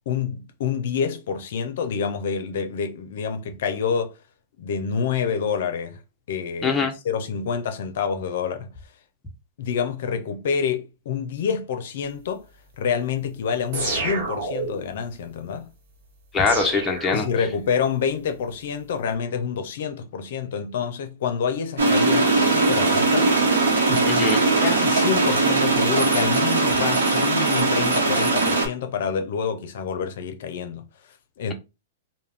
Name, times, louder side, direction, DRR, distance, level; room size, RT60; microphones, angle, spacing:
voice 1, 0.1-4.2 4.6-6.0 6.3-6.8 7.0-8.7 9.6-12.5 12.8-15.7 17.1-23.3 23.9-24.1 24.6-30.9 31.4-31.5, left 6 dB, 65° left, 0.5 m, -27 dB
voice 2, 6.6-6.9 16.3-17.2 24.1-24.4, left 4 dB, 15° left, 0.6 m, -22 dB
sound 1, 13.7-15.0 16.5-17.8, right 3 dB, 55° right, 1.0 m, -29 dB
sound 2, 21.8-28.7, right 3 dB, 85° right, 0.8 m, -20 dB
2.3 x 2.1 x 3.3 m
hypercardioid pair, 125°, 0 cm